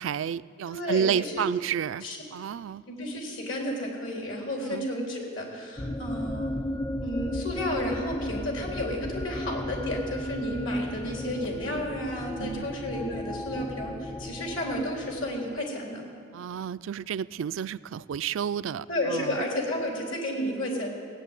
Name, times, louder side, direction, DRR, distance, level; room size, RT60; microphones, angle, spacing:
voice 1, 0.0-2.1 2.3-2.8 4.6-4.9 12.4-12.7 16.3-19.4, right 8 dB, 75° right, 16 dB, 0.3 m, -30 dB
voice 2, 0.7-1.4 2.0-2.2 2.9-6.5 7.0-16.0 18.9-20.9, left 1 dB, 75° left, -1 dB, 3.6 m, -32 dB
sound 1, 5.8-15.6, left 1 dB, 15° left, 0.4 m, -35 dB
17.5 x 8.5 x 9.2 m, 2.2 s
head